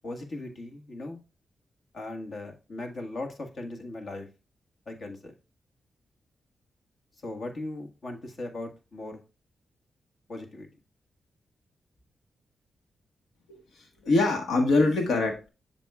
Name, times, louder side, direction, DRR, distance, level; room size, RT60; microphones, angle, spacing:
voice 1, 0.0-1.2 1.9-4.3 4.8-5.3 7.2-9.2 10.3-10.7, left 2 dB, 60° left, 3 dB, 1.7 m, -38 dB
voice 2, 13.5-15.5, left 2 dB, 90° left, 3 dB, 1.4 m, -24 dB
7.7 x 6.1 x 2.4 m, 0.30 s
cardioid pair, 80°, 0 cm